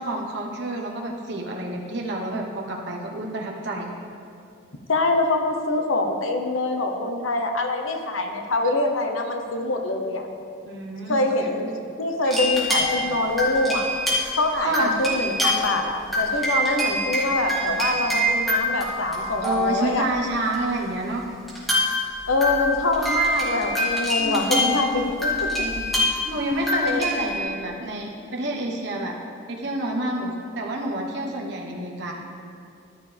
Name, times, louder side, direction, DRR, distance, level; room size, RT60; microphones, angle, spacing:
voice 1, 0.0-3.9 10.6-11.2 14.6-14.9 19.4-21.2 24.2-24.8 25.5-25.9 26.2-29.1 29.5-32.1, right 2 dB, 55° right, -1 dB, 1.3 m, -29 dB
voice 2, 4.9-10.3 11.1-13.9 14.3-20.1 22.3-25.6 26.8-27.3, left 2 dB, 80° left, 4 dB, 1.1 m, -25 dB
sound 1, 12.3-14.4 14.7-15.8 16.1-19.9 20.5-20.6 21.5-27.4, left 1 dB, ahead, 2.0 m, -25 dB
13.5 x 11.0 x 3.5 m, 2.4 s
head